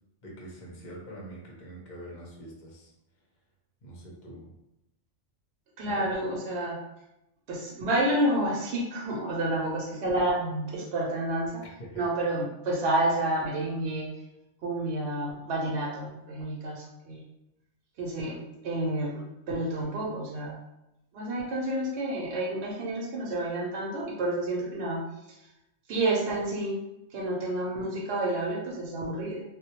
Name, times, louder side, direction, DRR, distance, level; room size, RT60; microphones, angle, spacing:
voice 1, 0.2-2.9 3.8-4.5 5.8-6.1 11.8-12.1, right 1 dB, 50° left, -3 dB, 0.6 m, -44 dB
voice 2, 5.8-6.8 7.5-11.6 12.0-14.1 14.6-17.2 18.0-18.4 18.6-20.6 21.1-25.0 25.9-26.8 27.1-29.4, right 1 dB, 65° right, -4 dB, 0.8 m, -29 dB
2.2 x 2.1 x 2.8 m, 0.88 s
omnidirectional pair, 1.3 m